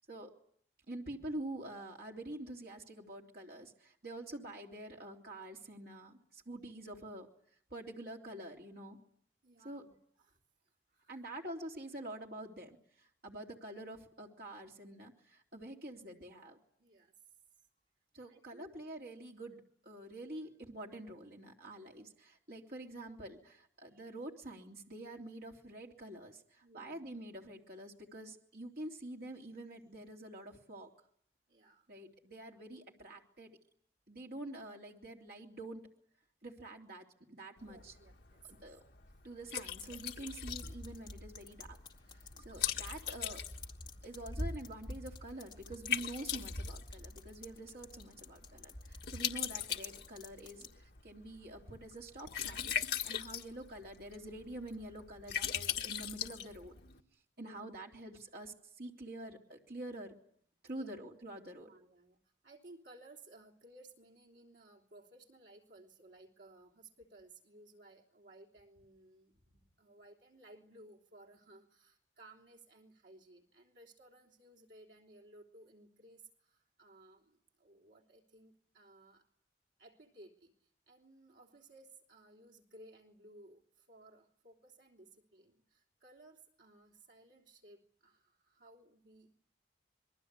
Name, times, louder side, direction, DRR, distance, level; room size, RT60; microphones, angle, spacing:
voice 1, 0.9-7.3 7.7-9.0 9.6-9.8 11.1-16.6 18.1-30.9 31.9-33.6 34.1-35.8 36.4-37.9 38.5-38.8 39.2-41.8 42.1-43.4 44.0-52.8 53.0-56.8 57.4-60.1 60.6-61.7, right 1 dB, 55° right, 0 dB, 3.4 m, -47 dB
voice 2, 9.4-10.0 10.3-10.4 10.9-11.2 16.8-17.1 18.3-18.7 26.6-27.1 31.5-31.9 37.6-38.6 42.3-42.7 57.4-57.7 60.7-61.0 61.5-79.3 79.8-89.4, right 2 dB, 75° right, 0 dB, 3.4 m, -59 dB
Liquid, 37.6-57.0, left 9 dB, 60° left, 1.7 m, -41 dB
sound 1, 39.7-50.7, left 1 dB, 25° left, 2.1 m, -47 dB
27.0 x 22.5 x 8.3 m, 0.65 s
head